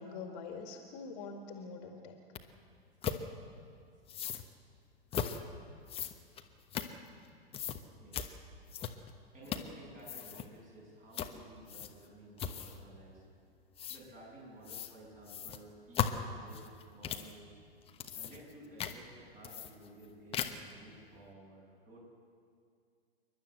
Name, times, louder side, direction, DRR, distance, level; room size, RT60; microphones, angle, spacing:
voice 1, 0.0-2.2, left 4 dB, 40° left, 3 dB, 2.2 m, -45 dB
sound 1, 2.3-2.4 3.0-3.2 4.1-4.4 5.1-5.4 5.9-7.3 7.5-7.8 8.1-8.3 8.7-9.1 9.4-9.8 10.0-10.5 11.1-11.3 11.7-12.1 12.4-12.8 13.8-14.0 14.6-14.9 15.3-17.3 17.8-18.5 18.8-19.0 19.4-20.0 20.3-20.7, left 8 dB, 20° left, 1.1 m, -38 dB
voice 2, 7.9-8.3 9.3-13.2 13.9-17.5 18.1-22.0, right 1 dB, 25° right, -2 dB, 7.6 m, -54 dB
28.5 x 12.0 x 7.8 m, 2.3 s
figure-of-eight pair, 105°, 31 cm